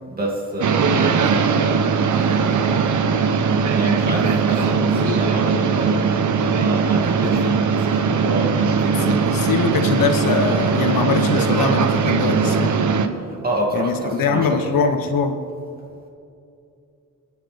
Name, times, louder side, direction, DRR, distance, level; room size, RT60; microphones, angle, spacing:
voice 1, 0.1-1.8 2.2-3.0 3.7-6.0 6.4-9.1 13.3-14.8, right 1 dB, 25° right, -2 dB, 2.7 m, -28 dB
sound 1, 0.6-13.1, right 5 dB, 65° right, 1.0 m, -19 dB
voice 2, 9.1-12.8 13.7-15.4, left 5 dB, 85° left, 6 dB, 1.4 m, -22 dB
30.0 x 10.0 x 3.6 m, 2.5 s
wide cardioid pair, 165°, 33 cm